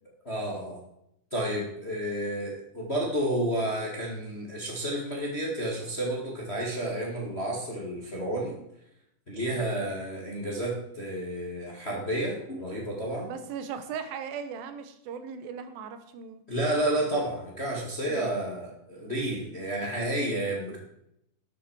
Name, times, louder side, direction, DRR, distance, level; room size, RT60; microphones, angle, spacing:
voice 1, 0.2-0.8 1.3-8.5 9.3-13.3 16.5-20.8, right 1 dB, 25° left, -1 dB, 1.4 m, -31 dB
voice 2, 13.2-16.4 18.1-18.4, right 7 dB, 80° right, 9 dB, 2.8 m, -38 dB
12.0 x 8.4 x 4.7 m, 0.78 s
omnidirectional pair, 4.2 m